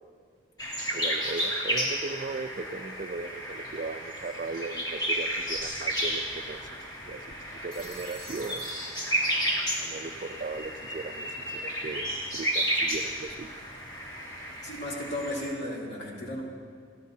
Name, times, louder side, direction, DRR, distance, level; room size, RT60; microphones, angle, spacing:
sound 1, 0.6-15.5, equal, 25° left, 2.0 m, -32 dB
voice 1, 0.9-6.6 7.1-7.3 7.6-8.7 9.8-13.5, right 3 dB, 45° right, 10 dB, 0.4 m, -37 dB
Telephone, 7.7-9.8, equal, 5° left, 1.4 m, -48 dB
voice 2, 14.6-16.4, left 1 dB, 65° left, -4 dB, 2.9 m, -34 dB
27.0 x 12.0 x 2.7 m, 2.2 s
head